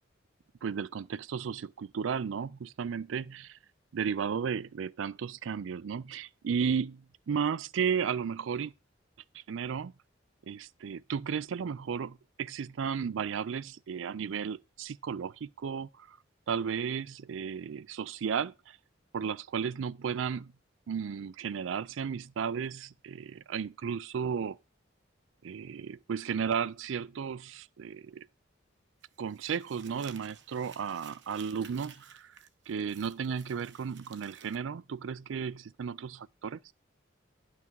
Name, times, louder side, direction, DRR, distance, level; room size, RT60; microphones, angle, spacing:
voice 1, 0.6-3.6 3.9-8.7 9.3-9.9 10.5-16.2 16.5-18.8 19.1-20.5 20.9-24.6 25.4-28.3 29.2-32.4 32.7-36.7, right 6 dB, 80° right, 0.4 m, -34 dB
Crumpling crinkling, 29.0-34.6, right 7 dB, 60° right, 1.0 m, -54 dB
11.0 x 5.9 x 4.6 m
head